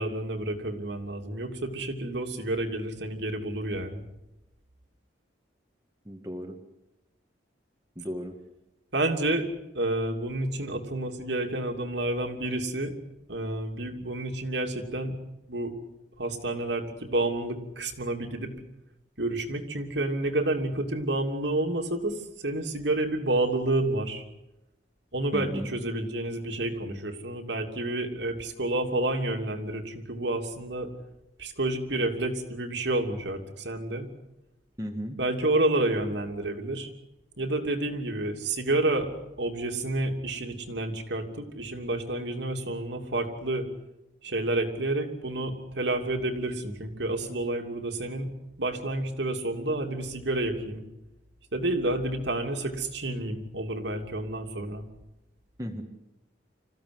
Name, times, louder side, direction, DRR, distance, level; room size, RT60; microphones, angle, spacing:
voice 1, 0.0-4.0 8.9-9.5 9.7-12.9 13.3-15.2 15.5-15.7 16.2-18.5 19.2-24.2 25.1-30.9 31.4-34.1 35.2-36.9 37.4-39.1 39.4-43.7 44.2-48.3 48.6-50.8 51.5-54.9, right 2 dB, 65° right, 3 dB, 3.0 m, -29 dB
voice 2, 6.1-6.6 8.0-8.4 25.3-25.7 34.8-35.2 55.6-55.8, equal, 15° right, 2 dB, 1.9 m, -35 dB
26.5 x 15.5 x 9.6 m, 0.95 s
head